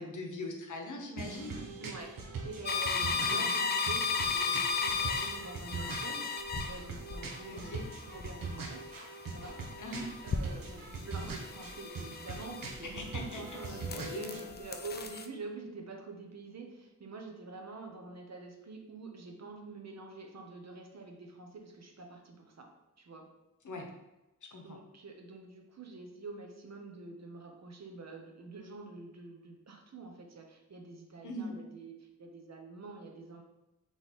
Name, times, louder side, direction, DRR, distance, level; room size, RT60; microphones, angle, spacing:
voice 1, 0.0-1.7 3.2-3.6 7.5-7.8 9.8-10.1 12.8-14.4 23.6-23.9 24.5-24.8 31.2-31.6, left 1 dB, 65° left, 2 dB, 0.8 m, -41 dB
sound 1, 1.2-14.4, right 4 dB, 85° right, 0.7 m, -42 dB
voice 2, 1.8-2.1 2.4-6.3 6.7-8.8 9.3-9.6 10.2-13.1 13.3-22.7 23.0-23.3 24.5-33.4, right 3 dB, 55° right, 2 dB, 0.8 m, -46 dB
sound 2, 2.7-13.1 13.5-15.3, left 5 dB, 30° left, 0.4 m, -35 dB
3.6 x 3.1 x 4.1 m, 0.97 s
wide cardioid pair, 100°, 33 cm